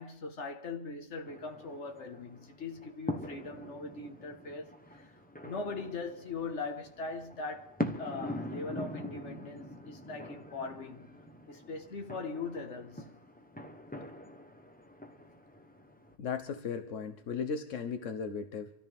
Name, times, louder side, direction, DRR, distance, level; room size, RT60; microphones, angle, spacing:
voice 1, 0.0-5.1 5.4-11.2 11.5-13.1, left 4 dB, 70° left, 1.7 m, -41 dB
sound 1, 1.2-16.1, left 1 dB, 10° left, 0.9 m, -43 dB
voice 2, 16.2-18.7, left 6 dB, 90° left, 1.3 m, -36 dB
26.0 x 13.5 x 3.5 m
omnidirectional pair, 1.2 m